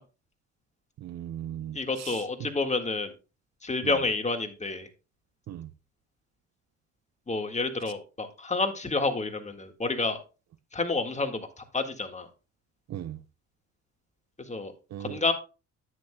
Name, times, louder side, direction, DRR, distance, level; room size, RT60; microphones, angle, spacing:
voice 1, 1.0-2.2 3.8-4.0 5.5-5.7 12.9-13.2 14.9-15.2, right 11 dB, 60° right, 0.7 m, -38 dB
voice 2, 1.7-3.1 3.6-4.9 7.3-10.2 10.7-12.3 14.5-14.7 15.0-15.3, left 3 dB, 25° left, 1.8 m, -29 dB
10.5 x 9.4 x 2.2 m
cardioid pair, 90°, 30 cm